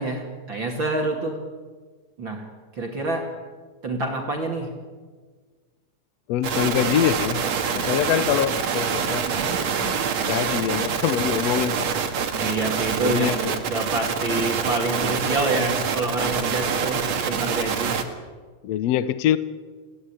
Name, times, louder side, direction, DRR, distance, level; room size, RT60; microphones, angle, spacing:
voice 1, 0.0-1.4 2.2-2.5 2.7-3.3 3.8-4.7 9.2-9.6 12.3-18.0, right 2 dB, 35° right, 1 dB, 3.0 m, -27 dB
voice 2, 6.3-7.4 7.7-9.3 9.8-11.9 13.0-13.6 18.6-19.4, left 11 dB, 80° left, 14 dB, 1.4 m, -24 dB
sound 1, 6.4-18.0, right 6 dB, 55° right, 2.8 m, -26 dB
27.0 x 17.5 x 10.0 m, 1.5 s
omnidirectional pair, 4.1 m